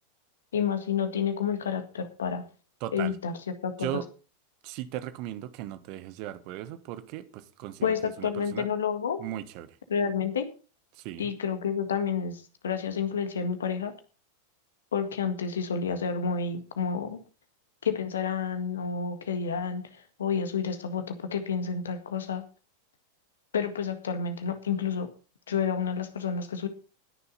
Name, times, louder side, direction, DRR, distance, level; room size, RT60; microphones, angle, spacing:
voice 1, 0.5-2.4 2.9-3.4 3.6-3.9 7.8-9.2 9.9-10.5 11.2-13.9 14.9-17.2 17.8-19.9 20.2-22.4 23.5-25.1 25.5-26.7, left 6 dB, 65° left, 1.8 m, -29 dB
voice 2, 2.8-3.1 3.8-4.1 4.6-8.7 9.2-9.8 10.9-11.3, right 13 dB, 45° right, 1.2 m, -37 dB
20.5 x 6.9 x 4.2 m
figure-of-eight pair, 90°, 0 cm